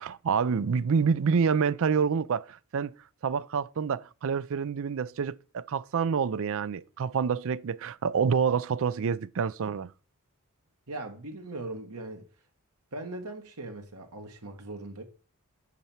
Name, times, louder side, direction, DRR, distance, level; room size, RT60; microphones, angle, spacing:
voice 1, 0.0-2.9 3.2-9.9, right 6 dB, 60° right, 0.4 m, -27 dB
voice 2, 10.9-12.3 12.9-15.0, right 2 dB, 90° right, 1.8 m, -39 dB
8.4 x 4.5 x 7.2 m
head